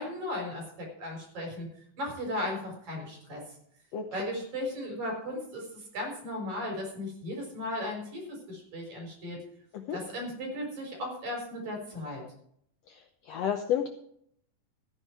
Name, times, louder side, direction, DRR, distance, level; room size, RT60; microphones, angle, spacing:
voice 1, 0.0-1.7 2.0-3.4 4.1-9.4 9.9-12.2, left 1 dB, 55° right, 1 dB, 5.8 m, -36 dB
voice 2, 12.9-13.9, left 9 dB, 90° left, 5 dB, 1.4 m, -31 dB
14.5 x 10.0 x 4.7 m, 0.68 s
omnidirectional pair, 4.1 m